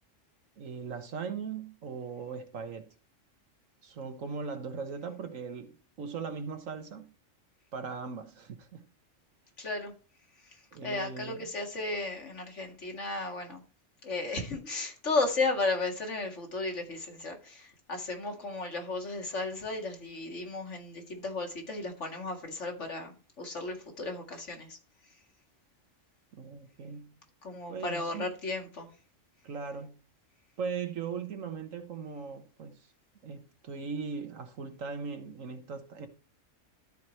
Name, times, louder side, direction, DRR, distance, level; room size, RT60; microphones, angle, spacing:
voice 1, 0.6-2.9 3.8-7.1 7.7-8.8 10.7-11.5 26.3-27.2 27.7-28.3 29.4-30.0 30.6-32.8 33.2-36.1, right 5 dB, 80° right, 1.6 m, -39 dB
voice 2, 9.6-9.9 10.8-13.6 14.0-23.1 23.4-24.8 27.4-28.9, left 3 dB, 65° left, 2.2 m, -34 dB
12.5 x 4.8 x 4.3 m
omnidirectional pair, 1.3 m